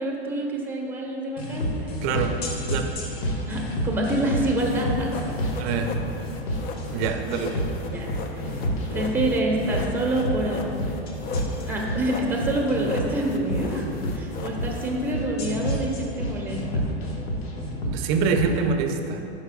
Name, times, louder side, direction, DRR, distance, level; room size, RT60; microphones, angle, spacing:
voice 1, 0.0-1.7 3.5-5.1 7.8-8.4 8.9-10.6 11.7-16.9, right 1 dB, 5° right, -1 dB, 1.1 m, -27 dB
sound 1, 1.4-18.5, equal, 65° left, 1.3 m, -29 dB
voice 2, 1.9-2.3 2.7-2.9 5.6-6.0 6.9-7.7 17.8-19.2, right 5 dB, 40° right, 5 dB, 0.6 m, -25 dB
sound 2, 4.6-15.1, left 4 dB, 30° left, 0.6 m, -37 dB
11.0 x 5.6 x 2.3 m, 2.8 s
hypercardioid pair, 110°, 33 cm